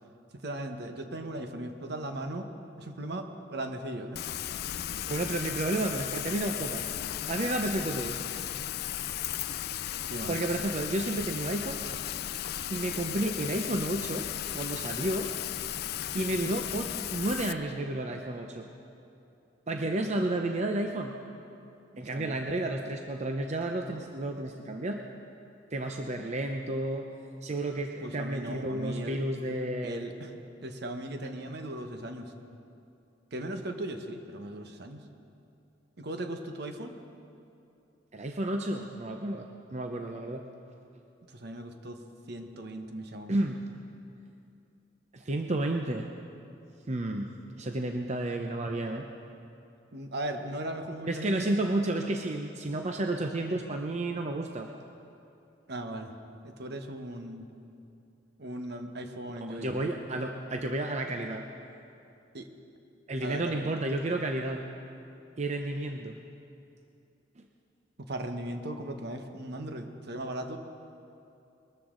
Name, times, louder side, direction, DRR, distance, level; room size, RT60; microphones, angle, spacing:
voice 1, 0.3-2.5 2.8-4.2 10.1-10.4 21.9-22.4 28.0-29.2 29.8-30.3 30.6-32.3 33.3-35.0 36.0-36.9 41.3-42.0 42.3-43.4 49.9-51.5 55.7-56.1 56.4-57.5 58.4-59.9 62.3-62.5 63.2-63.6 68.0-70.6, right 1 dB, 60° right, 6 dB, 1.1 m, -38 dB
Rain, 4.1-17.5, left 11 dB, 60° left, 0.4 m, -35 dB
voice 2, 5.1-6.9 7.3-8.7 10.3-11.9 12.7-14.3 14.5-15.3 16.1-18.7 19.7-21.2 22.0-25.0 25.7-27.1 27.4-30.0 38.1-40.5 43.3-43.6 45.1-46.1 46.9-49.1 51.1-54.7 59.5-61.5 63.1-64.7 65.4-66.2 67.4-67.5, right 1 dB, 40° right, 4 dB, 0.7 m, -31 dB
21.0 x 13.5 x 3.8 m, 2.7 s
head